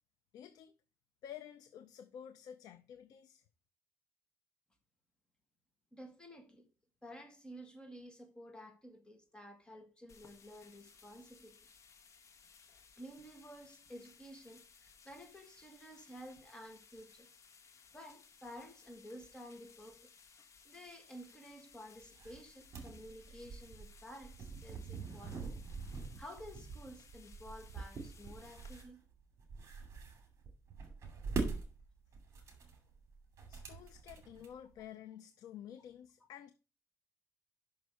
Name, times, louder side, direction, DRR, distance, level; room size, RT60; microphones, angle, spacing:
voice 1, 0.3-0.7 1.2-3.4 33.5-36.5, left 10 dB, 70° left, 0.6 m, -51 dB
voice 2, 5.9-6.7 7.0-11.6 13.0-17.3 17.9-20.1 20.6-25.4 26.2-29.0, equal, 15° left, 1.4 m, -52 dB
sound 1, 10.1-28.8, left 5 dB, 45° left, 1.2 m, -62 dB
sound 2, 22.0-34.8, right 4 dB, 45° right, 2.5 m, -44 dB
6.0 x 5.6 x 6.3 m
cardioid pair, 115°, 7 cm